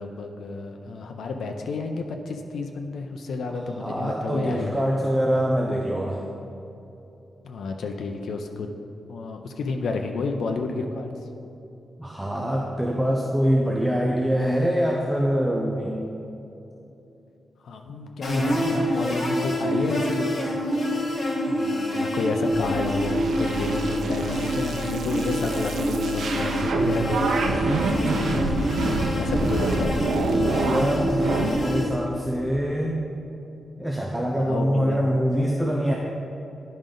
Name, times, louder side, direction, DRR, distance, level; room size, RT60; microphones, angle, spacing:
voice 1, 0.0-4.8 7.4-8.7 9.1-11.1 17.6-20.7 21.4-28.3 28.9-30.0 34.3-35.0, left 3 dB, 90° left, 4 dB, 0.5 m, -31 dB
voice 2, 3.8-6.3 12.0-16.0 17.9-18.0 30.6-33.1 33.8-36.0, equal, 5° right, -2 dB, 0.5 m, -24 dB
sound 1, 18.2-31.8, equal, 45° left, 1.3 m, -26 dB
sound 2, 22.5-31.5, right 3 dB, 80° right, 0.6 m, -27 dB
sound 3, 26.6-32.9, left 1 dB, 15° left, 1.3 m, -41 dB
11.0 x 5.1 x 3.8 m, 2.9 s
wide cardioid pair, 175°, 0 cm